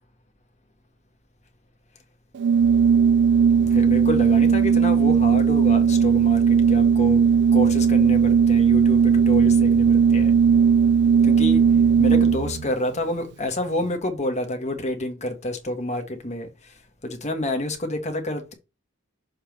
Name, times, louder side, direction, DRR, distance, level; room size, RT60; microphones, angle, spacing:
Organ, 2.4-12.6, right 6 dB, 55° right, 0.3 m, -17 dB
voice 1, 3.6-7.2 7.5-10.3 11.2-11.6 12.0-18.5, left 1 dB, 35° left, 1.4 m, -28 dB
6.6 x 3.2 x 5.2 m
head